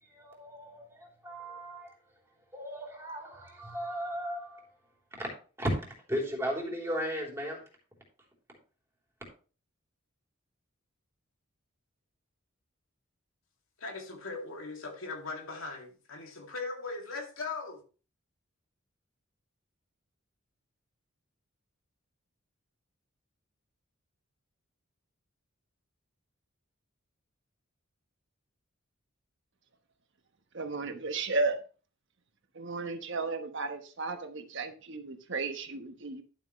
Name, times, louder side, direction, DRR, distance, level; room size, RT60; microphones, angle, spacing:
voice 1, 0.0-2.0 2.5-4.7 5.1-5.3 5.6-5.7 6.1-7.6, equal, 10° right, 3.4 m, -36 dB
voice 2, 13.8-17.8, left 3 dB, 75° left, 2.5 m, -39 dB
voice 3, 30.5-31.6 32.5-36.2, right 3 dB, 60° right, 1.2 m, -34 dB
12.0 x 7.4 x 3.2 m
head